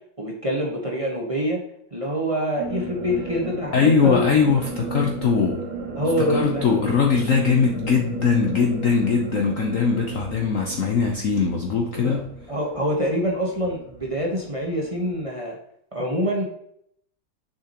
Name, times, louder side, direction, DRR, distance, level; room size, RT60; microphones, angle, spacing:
voice 1, 0.2-1.6 1.9-4.3 6.0-6.6 11.9-12.2 12.5-15.6 15.9-16.5, equal, 20° right, -1 dB, 1.0 m, -25 dB
sound 1, 2.6-15.2, right 3 dB, 75° right, 1.9 m, -34 dB
voice 2, 3.7-5.7 6.2-12.2, left 5 dB, 60° left, 1 dB, 0.9 m, -21 dB
6.7 x 5.8 x 2.9 m, 0.69 s
omnidirectional pair, 2.1 m